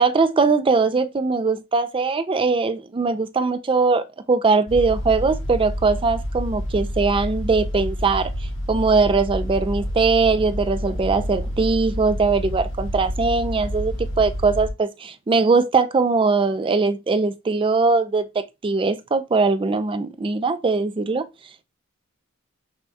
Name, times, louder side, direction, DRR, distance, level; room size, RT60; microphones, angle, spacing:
voice 1, 0.0-8.3 8.7-21.2, right 4 dB, 25° right, 0.3 m, -21 dB
sound 1, 4.7-14.7, equal, 60° left, 1.3 m, -29 dB
6.1 x 2.2 x 2.7 m
head